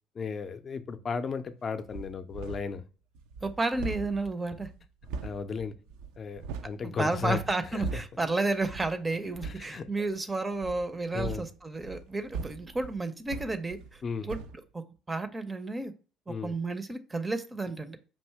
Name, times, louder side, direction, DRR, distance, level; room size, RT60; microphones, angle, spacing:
voice 1, 0.2-2.9 5.2-5.7 6.2-7.4 7.7-8.0 9.4-9.8 11.1-11.4 14.0-14.3 16.3-16.6, left 5 dB, 40° left, 10 dB, 0.5 m, -35 dB
sound 1, 1.9-2.8 3.1-6.8 7.2-8.2 8.6-9.0 9.3-9.7 10.6-14.0 14.3-14.6, right 4 dB, 70° right, 0.3 m, -40 dB
voice 2, 3.4-4.7 6.8-14.4 14.7-14.8 15.1-15.9 16.3-18.0, right 2 dB, 20° right, 10 dB, 0.5 m, -32 dB
5.4 x 2.7 x 3.3 m, 0.36 s
figure-of-eight pair, 55°, 0 cm